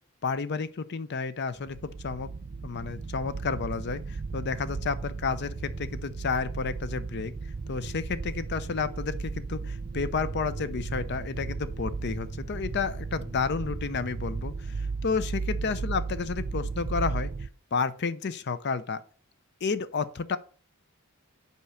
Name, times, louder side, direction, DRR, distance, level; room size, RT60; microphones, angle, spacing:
voice 1, 0.2-2.3 2.6-7.3 7.7-17.3 17.7-19.0 19.6-20.4, left 5 dB, 50° left, 0.5 m, -31 dB
sound 1, 1.6-17.5, right 4 dB, 40° right, 0.4 m, -35 dB
5.6 x 4.5 x 6.3 m
head